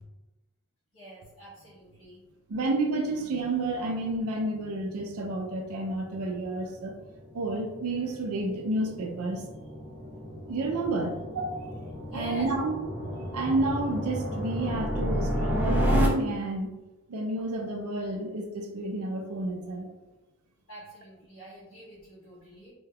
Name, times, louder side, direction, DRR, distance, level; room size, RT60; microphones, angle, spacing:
voice 1, 0.9-2.2 12.1-12.5 20.7-22.7, right 1 dB, 70° left, -12 dB, 1.1 m, -45 dB
voice 2, 2.5-7.0 7.3-9.4 10.5-11.6 12.1-16.7 17.1-19.9, right 2 dB, 75° right, 2 dB, 0.5 m, -30 dB
sound 1, 4.9-16.1, equal, 5° right, 0.4 m, -32 dB
2.8 x 2.2 x 3.4 m, 1.0 s
head